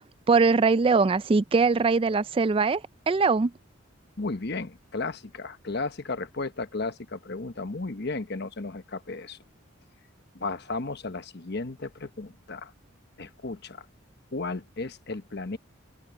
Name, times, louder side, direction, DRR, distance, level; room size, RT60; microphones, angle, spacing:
voice 1, 0.3-2.8 3.1-3.5, right 4 dB, 25° right, 0.3 m, -21 dB
voice 2, 4.2-9.4 10.3-12.7 13.2-13.8 14.3-15.6, left 3 dB, 55° left, 1.1 m, -34 dB
open air
head